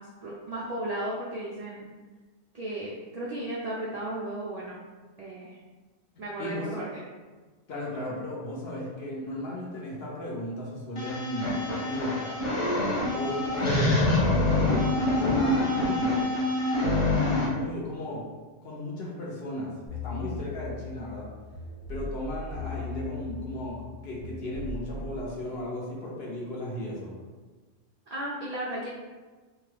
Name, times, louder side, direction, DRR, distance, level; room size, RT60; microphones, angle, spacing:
voice 1, 0.0-1.9 2.5-4.8 5.2-5.6 6.2-7.0 28.1-28.9, right 1 dB, 80° right, -6 dB, 0.3 m, -35 dB
voice 2, 6.4-6.9 7.7-12.4 13.1-14.1 14.5-16.3 17.3-18.2 18.6-21.3 21.9-23.8 24.0-27.1, left 1 dB, 60° left, -4 dB, 0.9 m, -35 dB
sound 1, 11.0-17.5, left 2 dB, 40° left, 0.4 m, -25 dB
sound 2, 19.9-25.2, left 3 dB, 20° left, 1.1 m, -39 dB
2.7 x 2.2 x 3.2 m, 1.3 s
omnidirectional pair, 1.3 m